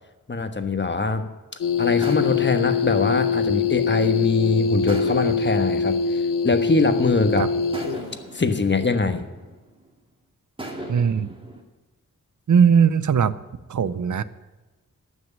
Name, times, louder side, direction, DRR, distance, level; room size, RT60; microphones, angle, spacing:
voice 1, 0.3-1.3 1.8-7.5 8.3-9.2, left 3 dB, 35° left, 8 dB, 1.3 m, -23 dB
sound 1, 1.6-8.1, left 6 dB, 70° left, 0.8 m, -23 dB
sound 2, 2.0-4.3 4.9-7.0 7.7-10.0 10.6-11.6, right 1 dB, 15° right, 2.4 m, -39 dB
voice 2, 10.9-11.3 12.5-13.4 13.7-14.2, right 7 dB, 65° right, 16 dB, 0.7 m, -19 dB
14.5 x 6.4 x 9.9 m, 1.2 s
wide cardioid pair, 80°, 33 cm